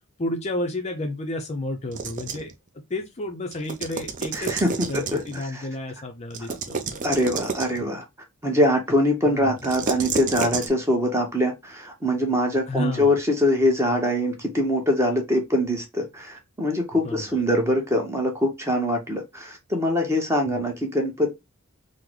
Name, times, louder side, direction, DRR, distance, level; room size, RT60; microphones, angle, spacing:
voice 1, 0.2-2.5 2.9-7.0 7.8-7.9 9.3-9.5 12.7-13.2 17.0-17.4 20.5-20.6, left 2 dB, 30° left, 0.4 m, -31 dB
sound 1, 1.9-2.5 3.5-5.4 6.3-7.8 9.6-10.7, right 6 dB, 35° right, 0.4 m, -31 dB
voice 2, 4.3-5.7 6.5-6.6 7.0-8.0 8.4-21.3, left 1 dB, 10° right, 0.8 m, -23 dB
3.7 x 2.0 x 3.0 m
head